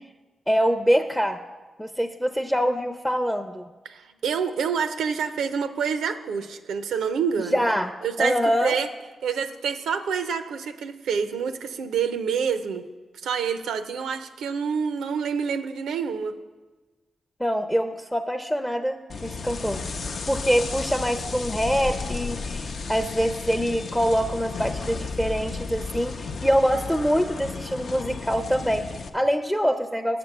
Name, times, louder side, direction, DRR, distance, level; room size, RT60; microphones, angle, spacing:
voice 1, 0.5-1.4 1.8-3.7 7.5-7.9 8.2-8.8 17.4-19.8 20.2-30.2, equal, 5° left, 6 dB, 0.5 m, -24 dB
voice 2, 3.8-7.7 8.0-8.9 9.2-12.9 13.2-16.4, right 6 dB, 85° right, 9 dB, 0.5 m, -27 dB
sound 1, 19.1-29.1, left 4 dB, 65° left, 0.5 m, -33 dB
7.4 x 6.0 x 6.5 m, 1.2 s
cardioid pair, 60°, 0 cm